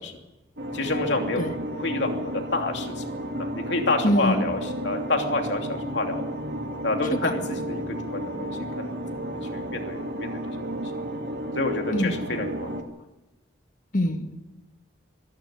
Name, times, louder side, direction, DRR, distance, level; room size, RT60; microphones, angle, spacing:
sound 1, 0.6-12.8, equal, 65° right, 2.2 m, -32 dB
voice 1, 0.7-3.0 3.4-6.2 6.8-10.4 11.5-12.9, left 2 dB, 70° left, 3 dB, 2.9 m, -29 dB
voice 2, 4.0-4.4 7.2-7.3 11.9-12.1 13.9-14.3, left 1 dB, 45° left, 7 dB, 1.6 m, -23 dB
24.0 x 11.5 x 9.5 m, 1.0 s
head